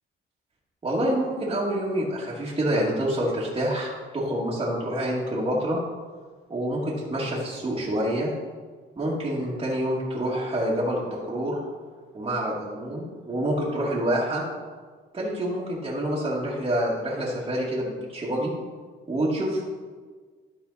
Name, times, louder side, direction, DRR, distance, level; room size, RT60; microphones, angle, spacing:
voice 1, 0.8-5.8 6.5-8.3 9.0-11.6 12.1-14.4 15.1-18.5 19.1-19.6, right 1 dB, 25° right, -7 dB, 2.1 m, -27 dB
12.0 x 4.3 x 4.1 m, 1.5 s
cardioid pair, 90°, 20 cm